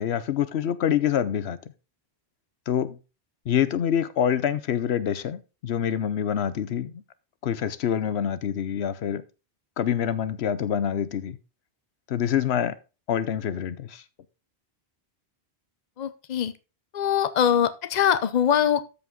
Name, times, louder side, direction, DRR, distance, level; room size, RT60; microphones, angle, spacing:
voice 1, 0.0-1.7 2.7-3.0 3.5-7.0 7.4-9.2 9.8-11.4 12.1-12.8 13.1-14.0, left 9 dB, 90° left, 1.0 m, -26 dB
voice 2, 16.0-16.5 16.9-18.9, left 9 dB, 45° left, 0.8 m, -22 dB
13.5 x 5.0 x 3.7 m
omnidirectional pair, 1.0 m